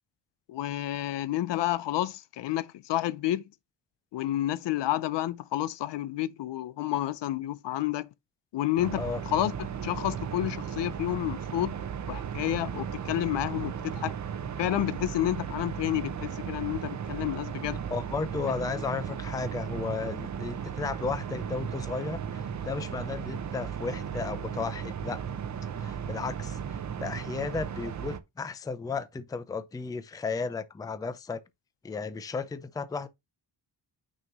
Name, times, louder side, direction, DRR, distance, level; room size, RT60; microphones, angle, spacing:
voice 1, 0.5-3.4 4.1-8.1 8.5-11.7 12.1-14.1 14.6-17.8, left 13 dB, 70° left, 0.6 m, -30 dB
sound 1, 8.8-28.2, right 8 dB, 40° right, 0.6 m, -36 dB
voice 2, 17.9-25.2 25.8-31.4 31.8-33.1, left 4 dB, 10° left, 0.4 m, -34 dB
6.3 x 3.0 x 5.2 m
wide cardioid pair, 145°, 44 cm